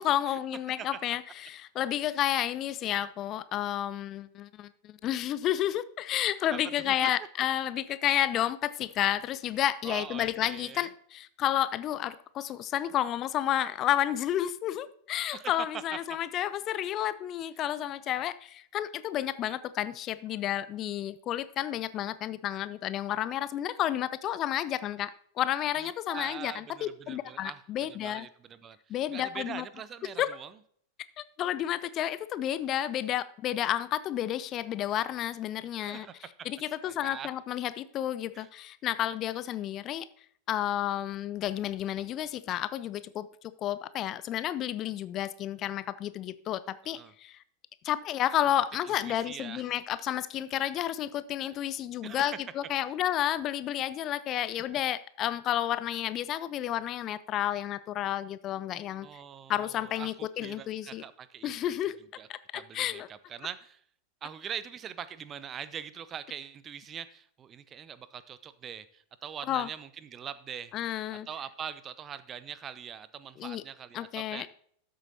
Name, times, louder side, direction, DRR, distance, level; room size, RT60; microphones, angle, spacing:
voice 1, 0.0-25.1 25.4-28.3 28.9-29.6 30.2-30.3 31.2-36.1 36.4-40.1 40.5-47.4 47.8-59.1 59.5-61.0 61.4-62.0 62.3-63.1 69.5-69.7 70.7-71.3 73.4-73.6 73.9-74.5, left 12 dB, 35° left, 0.4 m, -31 dB
voice 2, 9.8-10.9 15.3-15.5 25.8-28.8 29.1-30.5 35.8-36.2 36.8-37.3 38.3-38.5 46.8-47.1 49.0-49.6 52.0-52.2 59.0-61.8 62.2-62.3 62.5-63.8 64.2-70.7 71.1-74.5, right 8 dB, 25° right, 0.6 m, -42 dB
13.0 x 7.6 x 2.8 m
figure-of-eight pair, 90°, 0 cm